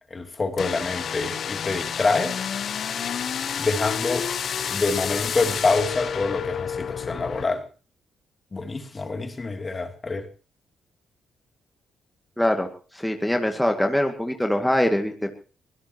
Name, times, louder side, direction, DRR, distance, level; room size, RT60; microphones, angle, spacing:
voice 1, 0.1-2.4 3.6-4.2 4.7-7.6 8.5-10.3, left 3 dB, 35° left, 5 dB, 3.0 m, -26 dB
sound 1, 0.6-7.5, left 8 dB, 60° left, 0.9 m, -29 dB
voice 2, 12.4-12.7 12.9-15.4, left 1 dB, 5° left, 4 dB, 2.2 m, -23 dB
24.0 x 16.5 x 3.0 m, 0.36 s
supercardioid pair, 50°, 0 cm